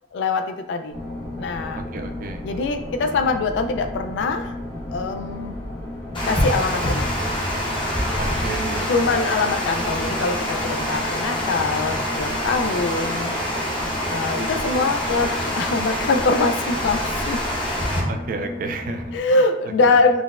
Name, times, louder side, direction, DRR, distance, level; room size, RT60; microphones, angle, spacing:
voice 1, 0.1-0.9 1.4-1.8 2.4-4.5 4.9-5.5 6.3-7.1 8.9-13.3 14.1-17.4 19.1-20.2, left 3 dB, 70° left, 7 dB, 0.3 m, -23 dB
sound 1, 0.9-19.2, left 1 dB, 90° left, 1.1 m, -35 dB
voice 2, 1.9-2.4 8.2-8.9 18.1-19.4 19.8-19.9, right 3 dB, 45° right, 6 dB, 0.3 m, -31 dB
Water, 6.1-18.0, equal, 25° left, 0.6 m, -26 dB
3.8 x 2.1 x 2.3 m, 0.88 s
head